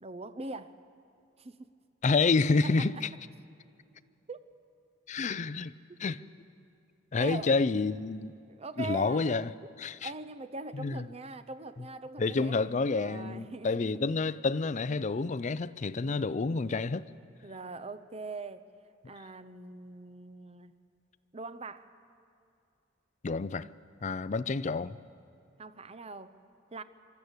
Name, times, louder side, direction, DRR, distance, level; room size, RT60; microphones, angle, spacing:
voice 1, 0.0-0.7 1.4-1.6 2.6-2.9 4.3-4.4 6.0-6.2 7.2-7.6 8.5-9.3 9.6-9.7 10.0-12.7 12.9-13.9 17.4-18.7 19.1-20.7 21.3-21.9 25.6-26.4 26.7-26.8, right 3 dB, 30° right, 0.8 m, -42 dB
voice 2, 2.0-3.1 5.1-5.7 6.0-6.2 7.1-8.3 8.8-9.5 9.8-10.1 10.7-11.1 12.2-17.1 23.2-23.7 24.0-25.0, left 4 dB, 40° left, 0.5 m, -29 dB
25.0 x 12.5 x 8.2 m
head